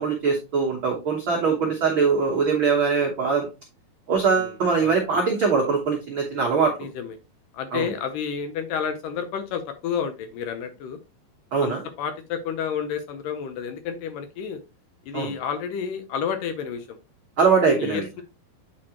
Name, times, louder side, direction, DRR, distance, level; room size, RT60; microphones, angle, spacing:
voice 1, 0.0-3.5 4.1-6.9 7.7-7.9 11.5-11.8 15.1-15.3 17.4-18.1, right 5 dB, 80° right, 0 dB, 1.1 m, -22 dB
voice 2, 1.3-1.8 4.4-5.0 6.8-7.2 7.5-11.0 11.6-14.6 15.1-17.0 17.6-18.2, left 7 dB, 75° left, 8 dB, 2.1 m, -31 dB
8.5 x 4.7 x 2.9 m, 0.28 s
omnidirectional pair, 4.3 m